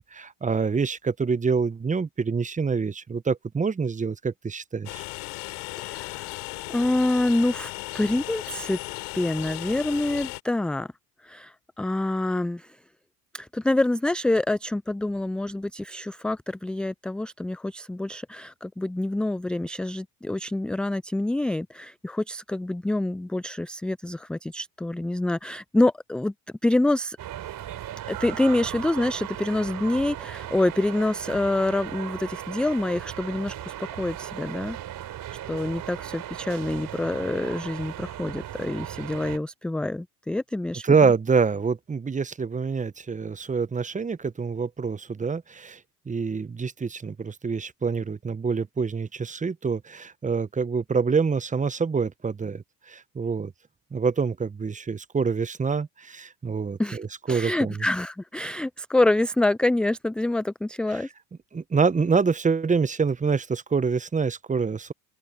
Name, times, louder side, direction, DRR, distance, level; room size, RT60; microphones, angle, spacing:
voice 1, 0.0-5.0 40.8-45.8 46.1-53.5 53.9-57.8 60.9-61.0 61.5-64.9, right 5 dB, 15° right, 1.2 m, -26 dB
Train, 4.9-10.4, left 27 dB, 60° left, 6.7 m, -36 dB
voice 2, 5.8-6.4 6.7-8.8 9.1-10.9 11.2-12.8 13.3-26.3 26.6-27.2 28.1-34.8 35.5-41.0 56.8-57.0 57.3-61.1, left 2 dB, ahead, 0.4 m, -26 dB
sound 1, 27.2-39.4, right 12 dB, 45° right, 3.7 m, -37 dB
open air
hypercardioid pair, 75°, 47 cm